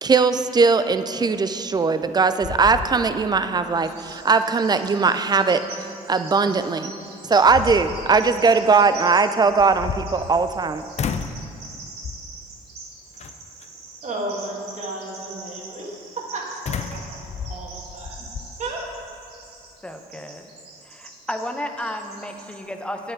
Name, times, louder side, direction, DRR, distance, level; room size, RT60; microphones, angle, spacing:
voice 1, 0.0-5.6 6.1-6.9 7.3-10.8, right 4 dB, 25° right, 11 dB, 0.5 m, -19 dB
sound 1, 1.8-2.1 2.4-3.4 3.8-3.9 6.6-6.7 7.2-8.2 9.5-10.6 11.0-11.5 12.0-12.4 13.2-13.7 16.7-18.5, left 6 dB, 40° left, 0.5 m, -32 dB
Bird vocalization bird call bird song, 3.8-22.6, right 3 dB, 75° right, 1.2 m, -43 dB
voice 2, 14.0-18.3 18.6-18.8, right 2 dB, 45° right, -2 dB, 1.8 m, -33 dB
voice 3, 19.8-20.5 20.8-23.1, left 1 dB, 5° left, 5 dB, 0.8 m, -32 dB
8.5 x 7.5 x 4.5 m, 2.5 s
supercardioid pair, 65°, 16 cm